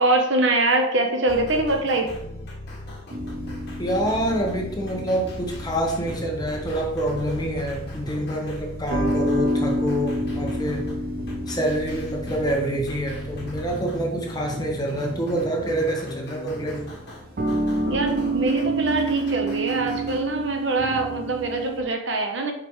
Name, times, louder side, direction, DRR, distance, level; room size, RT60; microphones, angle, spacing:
voice 1, 0.0-2.1 17.9-22.5, right 2 dB, 70° right, 3 dB, 1.0 m, -23 dB
sound 1, 1.3-20.2, equal, 55° left, 1.4 m, -38 dB
sound 2, 3.1-21.8, right 1 dB, 50° right, 0.7 m, -30 dB
voice 2, 3.8-10.8 11.5-16.8, right 1 dB, 20° left, -1 dB, 1.2 m, -26 dB
6.7 x 5.1 x 3.2 m, 0.82 s
head